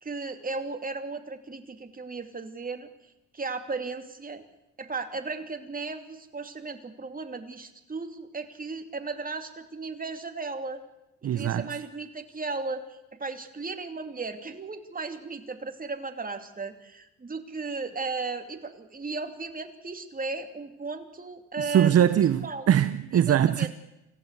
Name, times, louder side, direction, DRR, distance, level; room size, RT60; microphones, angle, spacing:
voice 1, 0.0-2.9 3.3-4.4 4.8-10.8 11.2-22.0 22.4-22.7 23.3-23.7, right 4 dB, 30° right, 2.7 m, -35 dB
voice 2, 11.2-11.7 21.6-23.7, right 10 dB, 55° right, 0.8 m, -22 dB
26.0 x 15.5 x 8.2 m
cardioid pair, 90°, 30 cm